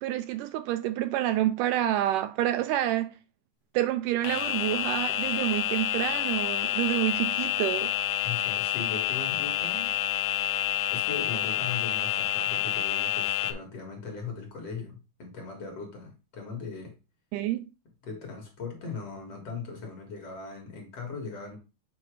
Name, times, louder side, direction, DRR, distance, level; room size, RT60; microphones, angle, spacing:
voice 1, 0.0-3.2 3.7-7.9 17.3-17.7, right 13 dB, 80° right, 2.0 m, -28 dB
sound 1, 4.2-13.5, left 13 dB, 85° left, 1.6 m, -28 dB
voice 2, 8.2-9.9 10.9-17.0 18.0-21.6, left 5 dB, 55° left, 2.1 m, -39 dB
7.9 x 2.7 x 4.7 m
omnidirectional pair, 3.9 m